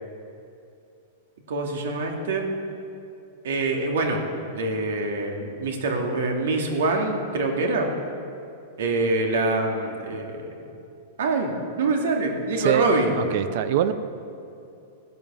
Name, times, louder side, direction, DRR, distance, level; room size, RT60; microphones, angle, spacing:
voice 1, 1.5-2.5 3.4-4.2 4.5-7.9 8.8-10.4 11.2-13.1, right 2 dB, 80° right, 2 dB, 2.4 m, -25 dB
voice 2, 12.6-12.9 13.1-13.9, right 10 dB, 50° right, 12 dB, 0.7 m, -23 dB
15.0 x 11.0 x 7.2 m, 2.6 s
supercardioid pair, 165°, 0 cm